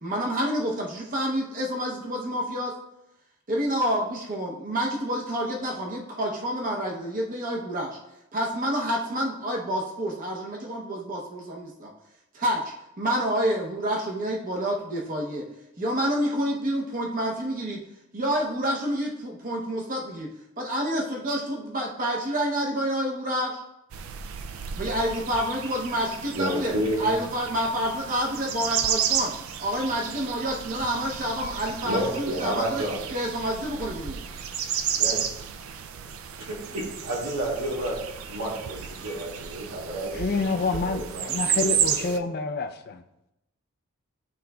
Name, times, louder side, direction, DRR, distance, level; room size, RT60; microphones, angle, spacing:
voice 1, 0.0-2.7 3.5-8.0 8.3-11.9 12.3-12.6 13.0-15.4 15.8-17.8 18.1-20.3 20.6-23.6 24.8-26.7 27.0-29.3 29.6-32.8 33.1-34.2, equal, 40° right, -1 dB, 0.8 m, -28 dB
sound 1, 23.9-42.2, right 8 dB, 65° right, 0.3 m, -32 dB
voice 2, 26.3-27.1 31.8-33.0 35.0-35.3 36.5-38.0 38.3-42.1, right 1 dB, 85° right, -4 dB, 2.0 m, -31 dB
voice 3, 40.1-43.0, left 4 dB, 45° left, 6 dB, 0.4 m, -28 dB
11.0 x 3.7 x 2.3 m, 0.88 s
head